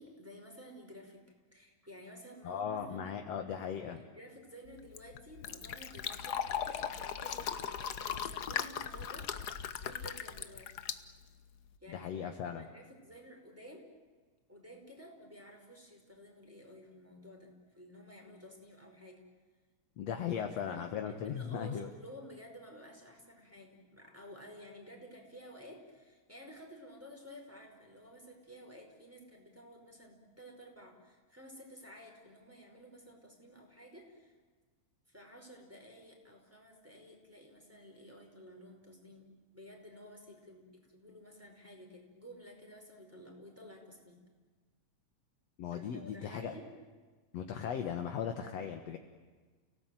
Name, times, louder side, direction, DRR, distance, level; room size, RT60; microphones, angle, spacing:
voice 1, 0.0-10.7 11.8-13.9 14.5-19.2 20.5-34.4 35.1-44.2 45.7-46.7, equal, 5° right, 0 dB, 5.0 m, -53 dB
voice 2, 2.4-4.0 11.9-12.7 20.0-21.9 45.6-46.5 47.3-49.0, left 8 dB, 65° left, 5 dB, 2.4 m, -37 dB
Fill (with liquid), 4.7-11.8, left 8 dB, 90° left, 0.8 m, -39 dB
30.0 x 18.0 x 9.2 m, 1.4 s
omnidirectional pair, 3.4 m